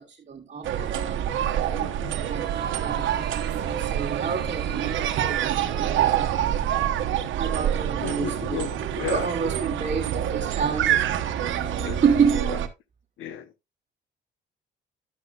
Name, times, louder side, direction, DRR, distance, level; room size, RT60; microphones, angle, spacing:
voice 1, 0.0-6.4 7.4-8.7 9.1-11.7 12.0-12.5, right 6 dB, 40° right, 1.2 m, -29 dB
sound 1, 0.6-12.7, right 10 dB, 75° right, 1.0 m, -26 dB
voice 2, 1.7-2.2 2.7-2.8 8.0-9.3 11.8-12.0 12.3-12.6 13.2-13.5, left 9 dB, 90° left, 0.9 m, -34 dB
sound 2, 2.2-7.0, right 8 dB, 55° right, 1.4 m, -36 dB
11.0 x 8.0 x 2.3 m
cardioid pair, 90°, 20 cm